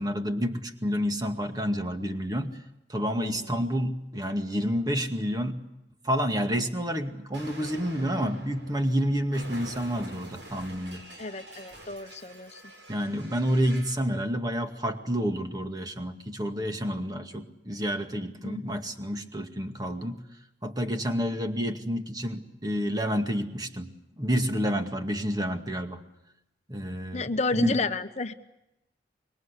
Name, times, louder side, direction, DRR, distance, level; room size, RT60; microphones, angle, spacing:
voice 1, 0.0-2.6 2.9-5.6 6.0-11.0 12.9-20.2 20.6-23.9 24.2-26.0 26.7-27.7, equal, 20° right, 5 dB, 2.1 m, -29 dB
Explosion, 7.3-14.0, right 1 dB, 85° right, 7.9 m, -46 dB
voice 2, 11.2-12.6 18.4-18.6 27.1-28.3, left 3 dB, 40° left, 9 dB, 1.0 m, -31 dB
26.0 x 23.5 x 8.4 m, 0.88 s
head